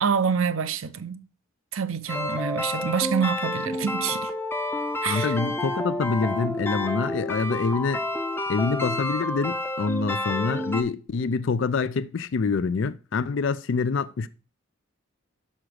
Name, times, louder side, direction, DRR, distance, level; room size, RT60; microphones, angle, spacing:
voice 1, 0.0-1.2 1.7-4.3 5.0-5.4, right 6 dB, 75° right, 0.6 m, -26 dB
sound 1, 2.1-10.8, left 1 dB, 10° left, 0.6 m, -29 dB
voice 2, 5.0-8.0 8.5-14.3, left 4 dB, 60° left, 0.4 m, -26 dB
6.4 x 5.9 x 6.3 m
head